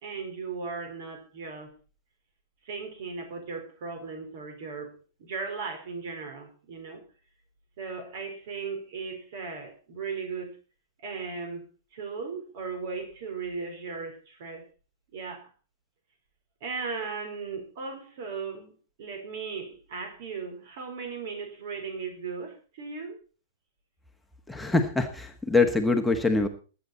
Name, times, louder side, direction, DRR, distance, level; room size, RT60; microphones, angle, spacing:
voice 1, 0.0-1.7 2.6-4.9 5.2-7.0 7.8-10.5 11.0-11.7 11.9-14.7 15.1-15.5 16.6-18.7 19.0-23.2, right 5 dB, 55° right, 7 dB, 4.3 m, -37 dB
voice 2, 24.5-26.5, left 3 dB, 5° left, 3 dB, 1.5 m, -24 dB
21.0 x 8.3 x 4.2 m, 0.36 s
figure-of-eight pair, 100°, 0 cm